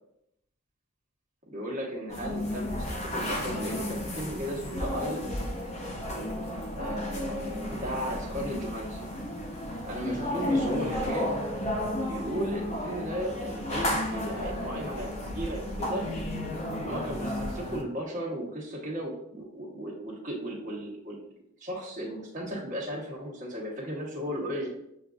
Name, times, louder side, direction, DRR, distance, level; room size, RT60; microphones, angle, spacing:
voice 1, 1.5-5.3 6.8-9.1 9.8-11.3 12.0-16.1 16.8-21.2 21.6-24.7, equal, 35° right, -4 dB, 1.1 m, -35 dB
sound 1, 2.1-17.8, left 1 dB, 30° left, 0.6 m, -33 dB
7.2 x 2.4 x 2.4 m, 0.78 s
head